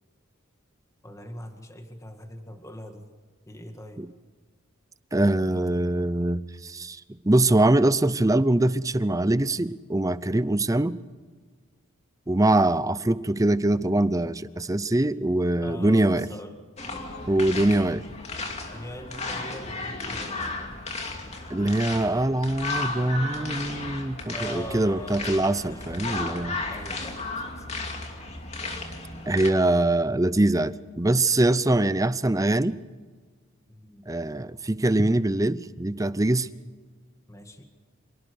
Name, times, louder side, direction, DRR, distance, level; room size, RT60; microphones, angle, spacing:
voice 1, 1.0-3.1 3.5-4.0 15.6-16.6 18.7-20.8 24.3-26.1 26.7-27.8 33.7-34.1 36.6-36.7 37.3-37.7, equal, 15° left, 5 dB, 2.0 m, -41 dB
voice 2, 5.1-11.0 12.3-16.3 17.3-18.0 21.5-26.5 29.3-32.8 34.1-36.5, right 1 dB, 15° right, 15 dB, 0.6 m, -23 dB
sound 1, 16.8-29.5, left 3 dB, 30° left, 2.7 m, -34 dB
27.0 x 19.0 x 6.5 m, 1.5 s
head